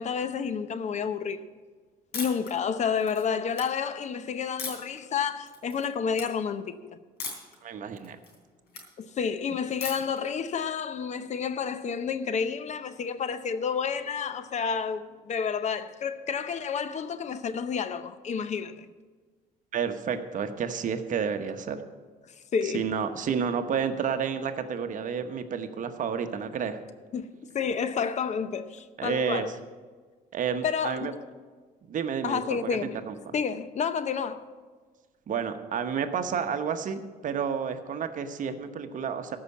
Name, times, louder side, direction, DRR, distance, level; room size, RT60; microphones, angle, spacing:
voice 1, 0.0-1.5 2.1-7.0 8.7-18.9 22.5-22.9 27.1-27.3 27.5-29.5 30.6-31.2 32.2-33.0 33.3-34.5, left 6 dB, 45° left, 0.7 m, -30 dB
sound 1, 2.1-2.5 3.0-3.6 4.6-5.0 5.5-5.9 6.1-6.3 7.2-7.6 7.9-8.8 9.8-10.2, left 4 dB, 75° left, 3.4 m, -37 dB
voice 2, 7.6-8.2 19.7-21.8 22.6-26.8 29.0-29.5 30.3-31.1 31.9-33.1 35.3-39.4, right 7 dB, 50° right, 1.0 m, -30 dB
14.0 x 5.7 x 8.3 m
cardioid pair, 110°, 17 cm